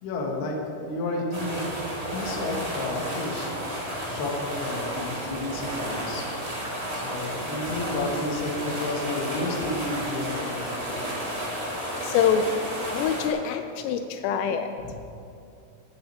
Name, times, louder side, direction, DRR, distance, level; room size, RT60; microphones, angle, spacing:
voice 1, 0.0-1.6 2.1-6.3 6.9-11.2 14.8-14.9, left 2 dB, 60° left, 0 dB, 3.3 m, -32 dB
sound 1, 1.3-13.3, equal, 15° right, 1.5 m, -32 dB
sound 2, 1.3-10.5, right 2 dB, 90° right, 4.6 m, -47 dB
voice 2, 12.0-12.4 12.9-14.7, left 8 dB, 85° left, 7 dB, 3.2 m, -25 dB
19.5 x 9.8 x 4.4 m, 2.6 s
omnidirectional pair, 5.8 m